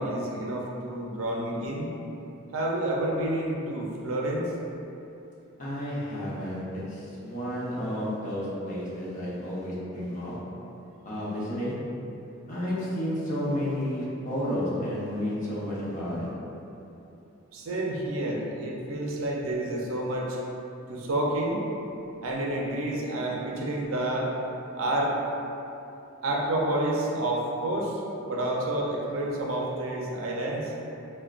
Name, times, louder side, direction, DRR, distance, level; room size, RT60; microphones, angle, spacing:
voice 1, 0.0-1.9 2.5-4.5 17.5-20.4 20.9-21.6 22.2-24.3 24.7-25.1 26.2-28.0 28.3-30.7, right 1 dB, 70° right, -2 dB, 0.5 m, -29 dB
voice 2, 5.6-10.4 11.0-11.8 12.5-16.3, equal, 35° left, -8 dB, 0.7 m, -31 dB
4.9 x 2.1 x 2.4 m, 2.9 s
head